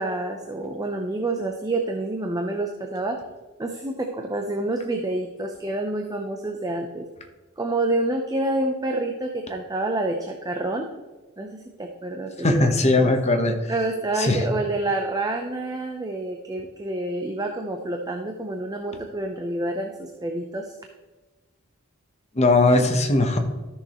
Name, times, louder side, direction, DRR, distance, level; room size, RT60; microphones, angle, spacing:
voice 1, 0.0-3.2 3.6-7.0 7.6-10.9 11.4-13.1 13.7-20.7, right 2 dB, 20° right, 3 dB, 0.6 m, -28 dB
voice 2, 12.4-13.5 14.2-14.4 22.4-23.4, left 2 dB, 30° left, 5 dB, 1.0 m, -19 dB
13.5 x 6.4 x 3.0 m, 1.2 s
head